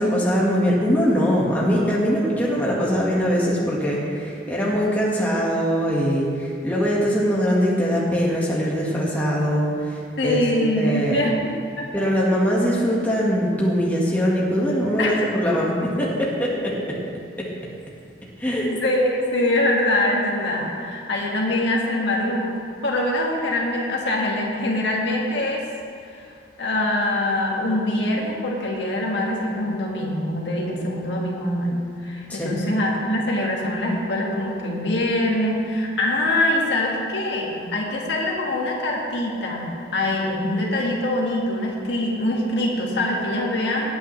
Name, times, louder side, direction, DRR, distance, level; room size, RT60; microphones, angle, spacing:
voice 1, 0.0-10.4 10.8-11.2 11.9-17.0 17.4-17.5 18.4-18.7 32.3-32.5, equal, 10° left, -5 dB, 1.7 m, -22 dB
voice 2, 10.2-11.9 15.0-15.3 18.7-25.6 26.1-26.2 26.6-43.9, left 1 dB, 75° left, -2 dB, 1.9 m, -24 dB
17.0 x 9.1 x 3.3 m, 2.4 s
head